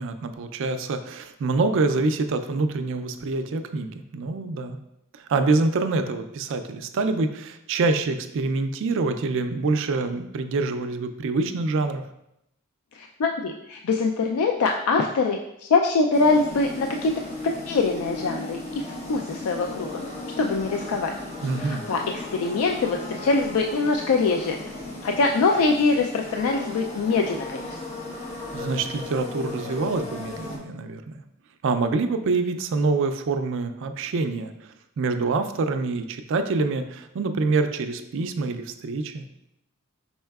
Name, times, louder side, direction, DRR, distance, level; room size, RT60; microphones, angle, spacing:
voice 1, 0.0-4.8 5.1-12.0 21.4-21.8 28.5-31.0 31.6-34.5 35.0-39.2, right 3 dB, 60° right, 8 dB, 0.4 m, -26 dB
voice 2, 12.9-17.1 17.4-18.6 19.1-20.0 20.4-21.1 21.6-24.6 25.0-27.7, left 3 dB, 80° left, 2 dB, 0.4 m, -23 dB
sound 1, 16.1-30.6, left 2 dB, 30° left, 0.9 m, -36 dB
5.4 x 4.2 x 2.3 m, 0.83 s
head